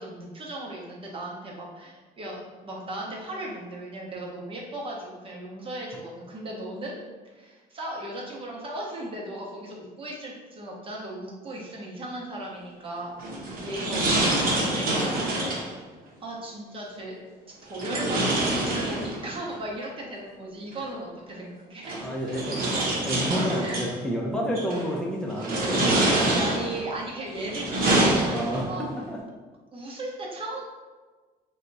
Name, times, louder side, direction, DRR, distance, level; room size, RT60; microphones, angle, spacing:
voice 1, 0.0-7.0 7.2-13.1 13.6-14.9 16.2-17.2 17.6-22.0 23.6-23.8 25.5-28.9 29.7-30.6, right 1 dB, 30° right, -3 dB, 0.9 m, -36 dB
sound 1, 13.2-15.7 17.7-19.4 20.7-20.8 21.8-23.9 24.5-24.9 25.4-26.8 27.3-28.8, right 1 dB, 60° right, 0.9 m, -26 dB
voice 2, 22.0-22.6 23.0-26.1 28.3-28.6 28.9-29.2, equal, 5° left, -2 dB, 0.6 m, -30 dB
2.8 x 2.3 x 4.0 m, 1.3 s
cardioid pair, 110°, 17 cm